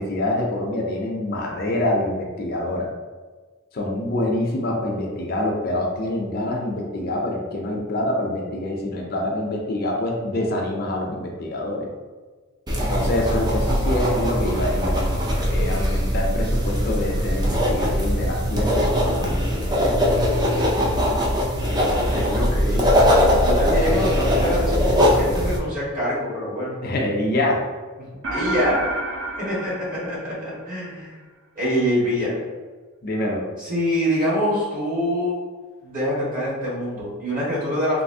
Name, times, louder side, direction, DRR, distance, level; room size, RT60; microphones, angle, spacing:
voice 1, 0.0-2.9 3.7-11.9 12.9-15.0 15.5-19.3 26.8-27.6 33.0-33.4, left 1 dB, 45° left, 0 dB, 0.5 m, -25 dB
sound 1, 12.7-25.6, equal, 20° right, 0.4 m, -21 dB
voice 2, 21.9-22.8 23.4-26.8 28.3-28.8 29.4-31.1 31.5-32.3 33.6-35.4 35.8-38.0, equal, 40° right, -7 dB, 1.3 m, -25 dB
sound 2, 28.2-30.9, right 2 dB, 70° right, 0.5 m, -30 dB
3.2 x 2.7 x 2.7 m, 1.3 s
head